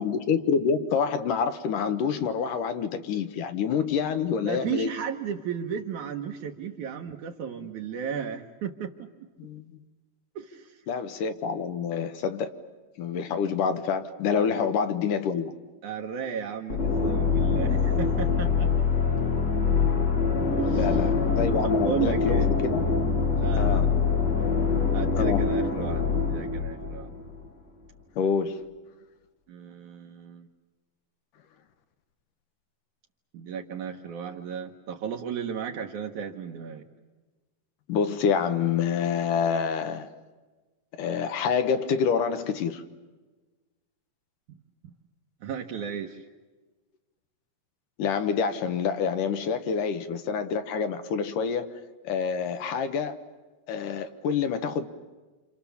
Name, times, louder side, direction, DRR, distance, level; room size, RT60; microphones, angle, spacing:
voice 1, 0.0-4.9 9.4-9.7 10.9-12.5 13.0-15.5 20.7-21.1 21.4-22.8 23.6-23.9 25.2-25.5 28.2-28.7 37.9-40.1 41.0-42.8 48.0-51.7 52.0-53.3 53.7-54.9, left 6 dB, 70° left, 2.7 m, -27 dB
voice 2, 4.4-9.1 10.4-10.7 14.4-14.7 15.8-18.7 20.6-21.0 21.8-22.5 23.4-23.9 24.8-27.1 29.5-30.5 33.3-36.9 44.8-44.9 45.4-46.2, right 7 dB, 65° right, 2.5 m, -34 dB
sound 1, 16.7-27.5, left 5 dB, 45° left, 1.4 m, -24 dB
28.5 x 28.0 x 7.2 m
omnidirectional pair, 4.1 m